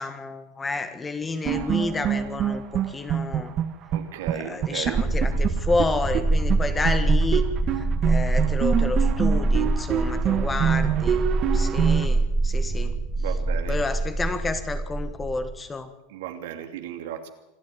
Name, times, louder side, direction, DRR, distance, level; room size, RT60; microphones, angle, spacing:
voice 1, 0.0-3.5 4.3-7.4 7.7-12.9 13.7-15.9, left 3 dB, 15° left, 10 dB, 1.7 m, -30 dB
sound 1, 1.4-4.0 4.3-4.4 4.6-6.2 6.5-6.6 6.8-12.1, right 10 dB, 35° right, 1.4 m, -25 dB
voice 2, 3.9-5.0 12.6-12.8 13.1-13.8 16.1-17.3, right 11 dB, 75° right, 6 dB, 2.8 m, -35 dB
sound 2, 4.9-15.6, right 2 dB, 15° right, 2.3 m, -24 dB
26.5 x 11.5 x 9.3 m, 0.94 s
supercardioid pair, 155°, 0 cm